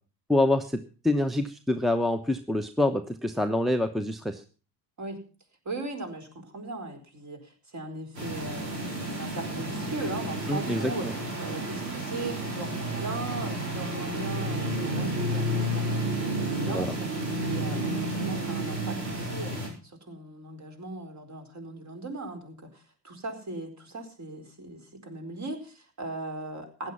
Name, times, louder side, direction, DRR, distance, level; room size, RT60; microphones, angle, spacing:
voice 1, 0.3-4.4 10.5-11.1 16.6-16.9, left 1 dB, ahead, 10 dB, 1.0 m, -26 dB
voice 2, 5.6-11.1 11.4-17.0 17.4-26.9, right 2 dB, 35° right, 5 dB, 4.7 m, -38 dB
sound 1, 8.1-19.7, right 1 dB, 90° right, 5.1 m, -31 dB
15.5 x 10.5 x 5.6 m, 0.37 s
hypercardioid pair, 65°, 49 cm